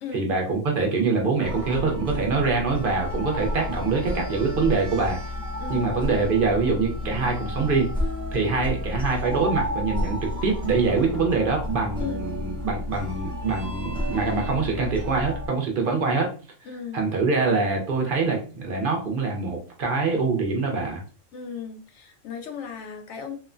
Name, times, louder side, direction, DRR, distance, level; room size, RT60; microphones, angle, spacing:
voice 1, 0.1-5.2 5.7-7.9 8.3-16.3 16.9-21.0, right 4 dB, 55° right, 1 dB, 0.6 m, -24 dB
sound 1, 1.4-15.5, left 1 dB, 5° left, 0.4 m, -31 dB
voice 2, 16.7-17.1 21.3-23.4, left 7 dB, 65° left, 4 dB, 0.8 m, -36 dB
2.9 x 2.1 x 2.4 m, 0.38 s
omnidirectional pair, 1.4 m